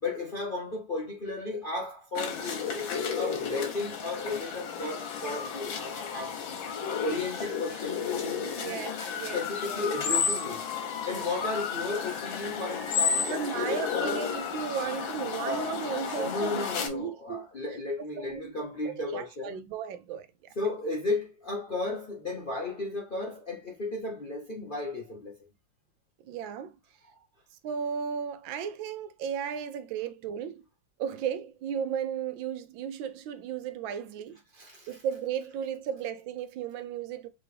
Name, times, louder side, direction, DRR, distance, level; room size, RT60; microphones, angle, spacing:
voice 1, 0.0-6.6 7.0-8.9 9.3-10.6 11.1-14.2 15.4-15.7 16.2-19.6 20.6-25.3 34.6-34.9, left 3 dB, 45° left, 0.6 m, -34 dB
sound 1, 2.1-16.9, left 6 dB, 80° left, 1.7 m, -32 dB
voice 2, 8.4-9.4 9.7-9.8 10.8-11.2 13.3-17.5 18.2-18.5 18.8-20.5 26.2-26.8 27.6-30.6 31.0-34.4 34.9-37.3, right 8 dB, 85° right, 1.3 m, -35 dB
3.8 x 3.3 x 3.2 m
omnidirectional pair, 2.1 m